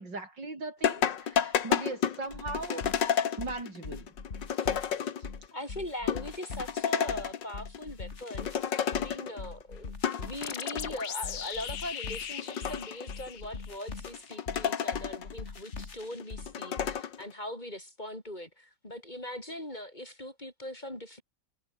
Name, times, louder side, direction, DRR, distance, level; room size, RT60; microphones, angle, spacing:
voice 1, 0.0-2.8 3.4-4.1 4.7-5.0, right 3 dB, 85° right, 6.3 m, -39 dB
sound 1, 0.8-5.4 5.8-5.9 6.1-7.9 8.1-9.5 9.8-11.1 11.6-11.8 12.2-13.5 14.0-15.4 15.8-17.2, left 8 dB, 85° left, 2.1 m, -31 dB
sound 2, 2.3-17.0, left 4 dB, 40° left, 2.3 m, -43 dB
voice 2, 5.5-8.5 8.9-21.2, left 1 dB, 25° left, 5.0 m, -41 dB
sound 3, 10.4-13.9, left 9 dB, 65° left, 1.8 m, -39 dB
omnidirectional pair, 1.9 m